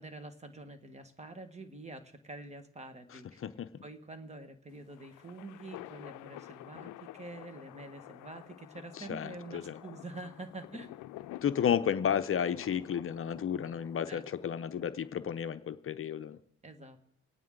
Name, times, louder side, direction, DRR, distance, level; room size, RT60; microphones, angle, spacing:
voice 1, 0.0-3.4 3.8-10.9 14.1-14.2 16.6-17.1, right 2 dB, 20° right, 8 dB, 1.6 m, -46 dB
voice 2, 3.1-3.8 8.9-9.8 11.4-16.4, left 8 dB, 45° left, 11 dB, 0.7 m, -32 dB
sound 1, 4.7-15.2, left 15 dB, 90° left, 0.5 m, -50 dB
25.0 x 9.2 x 3.8 m, 0.79 s
cardioid pair, 90°, 30 cm